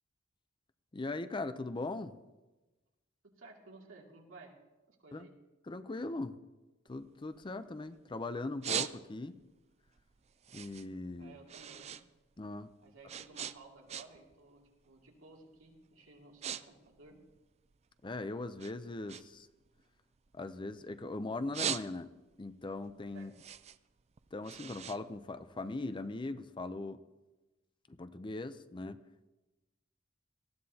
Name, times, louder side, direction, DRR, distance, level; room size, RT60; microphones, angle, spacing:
voice 1, 0.9-2.1 5.1-5.3 5.7-6.4 6.9-9.4 10.5-11.3 12.4-12.7 18.0-19.5 20.3-22.1 22.4-23.3 24.3-27.0 27.9-29.0, left 2 dB, 25° left, 11 dB, 0.5 m, -40 dB
voice 2, 3.2-4.6 4.9-5.3 11.2-11.9 12.8-17.2 23.1-23.3, right 3 dB, 85° right, -1 dB, 2.6 m, -56 dB
sound 1, 6.9-8.0 8.4-9.4 9.8-12.0 12.3-14.3 14.6-15.0 15.6-15.8 16.1-16.6 16.9-18.1 18.6-20.9 21.3-22.3 22.7-25.9, right 9 dB, 35° right, 0.4 m, -41 dB
19.0 x 15.0 x 2.8 m, 1.1 s
head